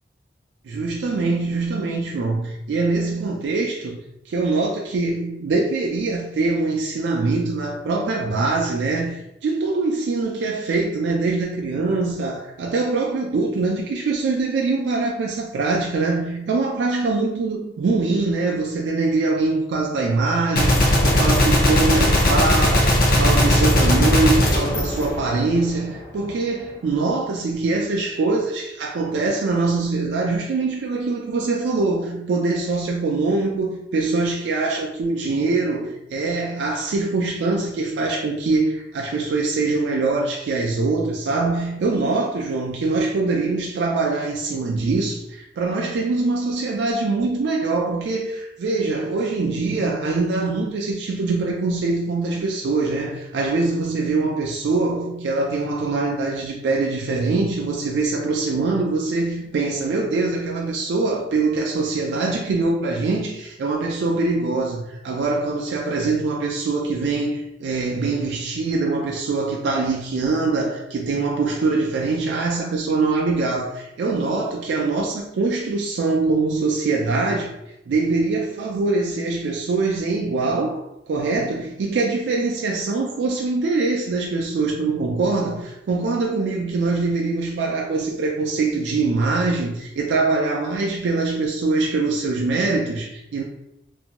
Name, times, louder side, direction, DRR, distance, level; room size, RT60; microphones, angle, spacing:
voice 1, 0.6-4.0 4.3-77.5 77.9-93.4, right 3 dB, 75° right, -1 dB, 0.3 m, -23 dB
Gunshot gunfire, 20.6-25.8, left 1 dB, 55° left, 0.6 m, -18 dB
2.5 x 2.2 x 2.8 m, 0.86 s
head